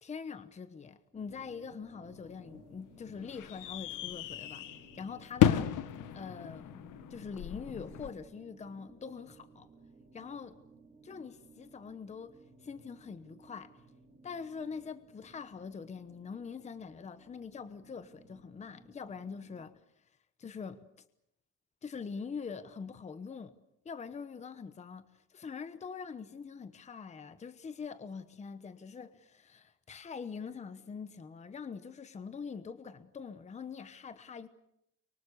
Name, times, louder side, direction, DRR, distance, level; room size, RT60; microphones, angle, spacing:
voice 1, 0.0-9.7 10.1-10.6 11.0-13.8 14.2-20.9 21.8-23.5 23.8-34.5, left 5 dB, 20° left, 1.0 m, -44 dB
sound 1, 1.1-19.7, right 3 dB, 20° right, 3.6 m, -59 dB
sound 2, 2.1-8.1, left 11 dB, 85° left, 1.4 m, -33 dB
30.0 x 24.0 x 6.7 m
cardioid pair, 165°, 30 cm